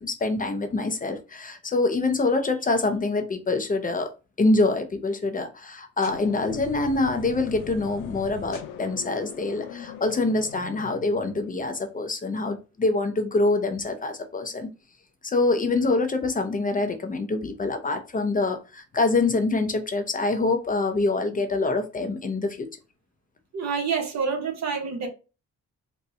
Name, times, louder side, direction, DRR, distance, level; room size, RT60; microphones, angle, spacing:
voice 1, 0.0-4.1 4.4-14.7 15.2-22.7, left 3 dB, 30° left, 0.6 m, -25 dB
sound 1, 6.0-12.0, left 7 dB, 90° left, 0.6 m, -41 dB
voice 2, 23.5-25.1, right 5 dB, 60° right, 1.1 m, -27 dB
4.1 x 2.2 x 2.7 m
cardioid pair, 90°, 30 cm